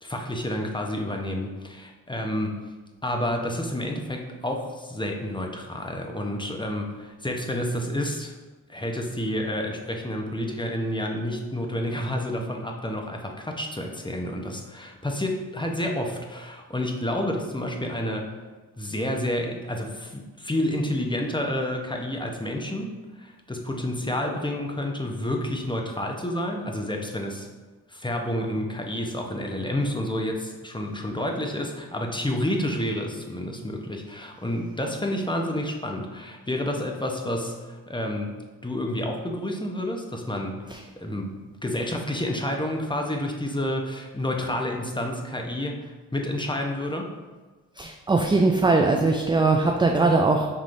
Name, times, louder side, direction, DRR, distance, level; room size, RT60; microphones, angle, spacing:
voice 1, 0.0-2.6 3.0-8.3 8.7-18.3 18.8-27.5 27.9-38.3 38.6-40.6 41.0-41.4 41.6-47.1, left 1 dB, 10° left, 2 dB, 0.8 m, -29 dB
voice 2, 47.8-50.5, right 3 dB, 15° right, 2 dB, 0.4 m, -20 dB
5.5 x 3.1 x 2.6 m, 1.3 s
supercardioid pair, 45°, 38 cm